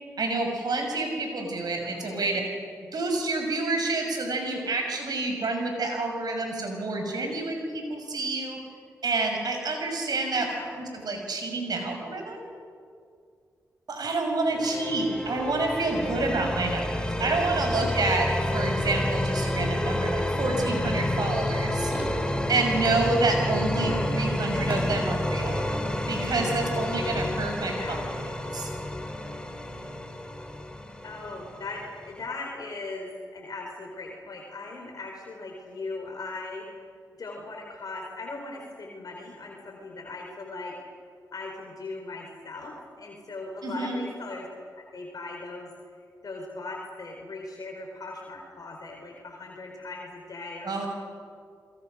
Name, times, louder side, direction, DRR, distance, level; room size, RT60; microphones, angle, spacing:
voice 1, 0.2-2.4 2.9-8.6 9.0-10.5 10.7-12.5 13.9-21.9 22.5-25.6 26.1-28.0 28.5-28.7 43.6-44.0 50.6-50.9, right 3 dB, 65° right, 3 dB, 6.1 m, -28 dB
voice 2, 10.3-10.7 14.5-15.0 23.8-24.1 27.6-28.1 31.0-36.8 37.2-40.8 41.3-44.5 44.8-45.7 46.2-50.9, left 3 dB, 60° left, 0 dB, 4.3 m, -39 dB
sound 1, 14.5-32.2, left 1 dB, 10° left, 3.6 m, -29 dB
Fireworks, 20.7-25.9, right 1 dB, 20° right, 7.3 m, -41 dB
28.5 x 22.0 x 6.4 m, 2.2 s
supercardioid pair, 40°, 7 cm